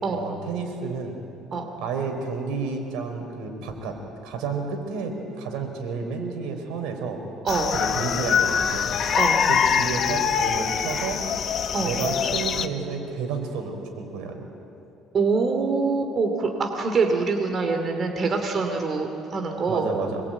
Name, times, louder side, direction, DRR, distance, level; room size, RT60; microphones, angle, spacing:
voice 1, 0.1-1.2 1.8-4.0 4.2-7.2 7.7-8.9 9.5-11.2 11.8-14.4 18.9-19.0 19.7-20.2, right 4 dB, 85° right, 4 dB, 4.5 m, -31 dB
sound 1, 7.5-12.7, left 7 dB, 45° left, 1.1 m, -24 dB
voice 2, 9.1-9.4 11.7-11.9 15.1-19.9, right 4 dB, 35° right, 4 dB, 2.6 m, -24 dB
25.5 x 22.0 x 9.1 m, 2.8 s
cardioid pair, 130°, 0 cm